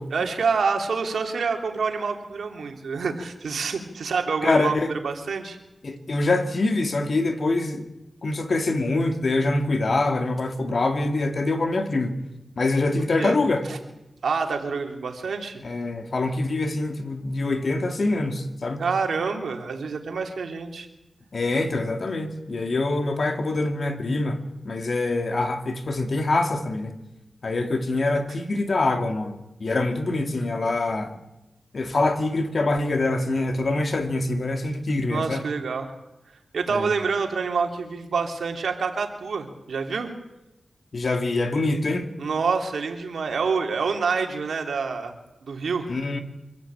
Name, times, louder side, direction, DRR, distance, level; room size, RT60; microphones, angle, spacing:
voice 1, 0.1-4.7 5.0-5.6 13.2-13.4 13.7-13.8 14.2-15.6 18.8-20.9 35.1-35.9 36.5-40.1 42.2-45.1 45.4-45.9, right 5 dB, 75° right, 3 dB, 3.2 m, -27 dB
voice 2, 4.4-4.9 5.8-7.9 8.2-12.2 12.6-13.7 15.6-18.8 21.3-24.4 24.6-27.0 27.4-31.2 31.7-35.4 36.7-36.9 40.9-42.1 45.9-46.2, left 2 dB, 55° left, 6 dB, 2.5 m, -24 dB
25.5 x 14.0 x 8.9 m, 0.97 s
wide cardioid pair, 80°, 0 cm